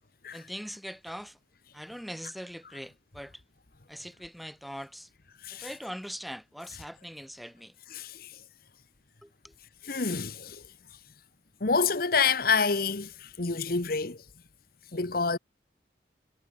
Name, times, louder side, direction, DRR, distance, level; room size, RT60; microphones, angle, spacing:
voice 1, 0.3-1.4 1.7-3.4 3.9-5.1 5.5-7.7 9.2-9.5, equal, ahead, 5.6 m, -41 dB
voice 2, 7.9-8.4 9.8-10.6 11.6-14.2 14.9-15.4, left 5 dB, 55° left, 1.3 m, -28 dB
head